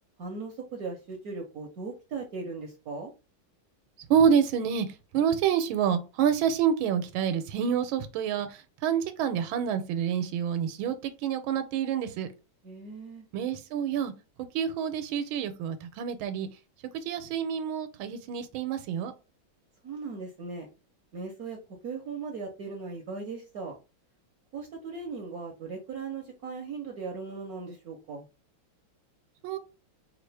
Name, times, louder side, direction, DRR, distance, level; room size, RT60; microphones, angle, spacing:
voice 1, 0.2-3.1 12.6-13.2 19.8-20.7 21.1-21.6 21.8-23.8 24.5-28.2, right 4 dB, 65° right, 1.0 m, -38 dB
voice 2, 4.1-12.3 13.3-14.1 14.5-16.5 16.9-19.1 29.4-29.6, right 8 dB, 85° right, 1.5 m, -27 dB
4.8 x 2.5 x 3.3 m
omnidirectional pair, 2.2 m